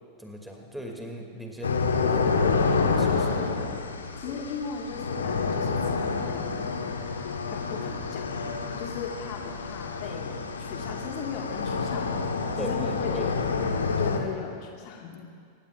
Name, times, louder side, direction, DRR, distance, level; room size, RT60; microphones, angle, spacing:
voice 1, 0.2-3.3 4.3-4.4 12.6-13.3 13.6-13.7, equal, ahead, 0 dB, 2.6 m, -39 dB
sound 1, 1.6-14.2, left 4 dB, 70° left, 1.3 m, -28 dB
voice 2, 3.4-6.6 7.5-8.4 8.8-13.5 14.0-15.2, left 6 dB, 45° left, 0 dB, 1.8 m, -38 dB
25.5 x 20.0 x 2.5 m, 2.2 s
figure-of-eight pair, 90°, 0 cm